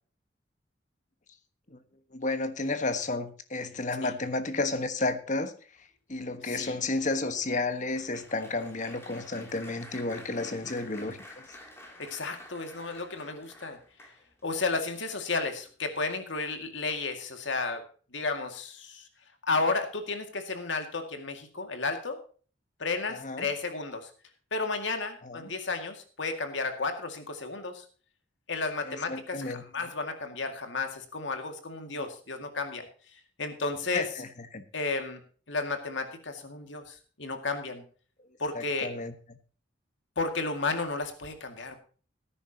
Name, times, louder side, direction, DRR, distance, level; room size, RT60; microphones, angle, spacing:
voice 1, 2.1-5.5 5.8-11.4 23.1-23.5 25.2-25.5 28.8-29.9 31.9-32.0 33.9-34.6 38.2-38.3 38.5-39.1, left 2 dB, 40° left, 9 dB, 1.3 m, -32 dB
Applause, 6.2-14.5 15.1-15.4 15.7-15.8, left 1 dB, 15° left, 2.8 m, -51 dB
voice 2, 12.0-13.8 14.4-17.9 18.1-19.1 19.4-22.2 22.8-24.1 24.5-27.9 28.5-32.9 33.1-34.0 34.7-35.2 35.5-37.8 38.4-38.9 40.2-41.8, left 3 dB, 75° left, 6 dB, 2.1 m, -33 dB
18.0 x 10.0 x 2.9 m, 0.40 s
head